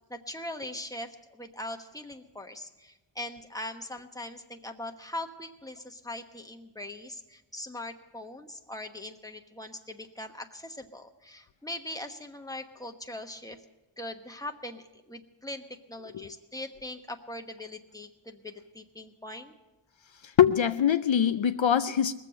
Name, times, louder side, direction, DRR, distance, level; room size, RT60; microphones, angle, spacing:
voice 1, 0.1-13.6 14.0-15.6 15.9-19.5, left 1 dB, 5° left, 4 dB, 1.1 m, -41 dB
voice 2, 20.2-22.1, left 9 dB, 65° left, 11 dB, 0.5 m, -23 dB
20.5 x 7.6 x 6.4 m, 1.0 s
wide cardioid pair, 40°, 50 cm